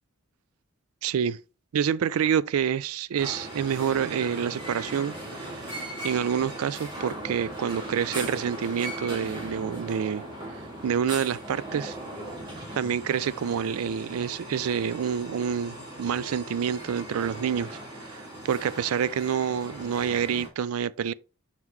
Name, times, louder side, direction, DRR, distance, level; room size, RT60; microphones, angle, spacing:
voice 1, 1.0-1.4 1.7-5.7 6.0-10.2 10.8-12.0 12.7-21.1, right 8 dB, 75° right, 0.3 m, -28 dB
sound 1, 3.2-20.5, right 1 dB, 20° right, 2.1 m, -38 dB
5.9 x 5.7 x 3.1 m
head